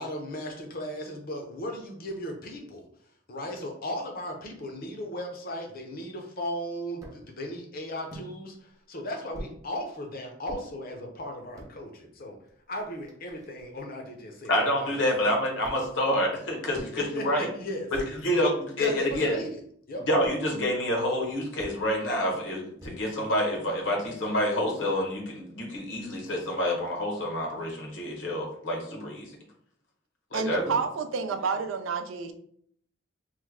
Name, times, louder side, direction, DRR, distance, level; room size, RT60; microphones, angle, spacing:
voice 1, 0.0-2.8 3.3-12.4 12.7-14.9 17.0-17.9 18.8-19.5 19.9-20.1, equal, 50° left, 3 dB, 0.7 m, -36 dB
sound 1, 7.0-7.2 8.1-8.3 9.3-9.6 10.5-10.6 11.4-11.7 12.5-12.6 12.8-13.8 15.6-16.0 16.7-17.1 17.9-18.3 19.1-19.4 20.2-20.5 21.6-21.8 22.8-23.2, equal, 15° right, 0.6 m, -44 dB
voice 2, 14.5-17.5 18.2-19.4 20.1-29.3 30.3-30.6, left 1 dB, 70° left, 0 dB, 1.0 m, -27 dB
voice 3, 30.3-32.3, right 5 dB, 90° right, 7 dB, 0.4 m, -29 dB
3.1 x 2.2 x 3.5 m, 0.65 s
head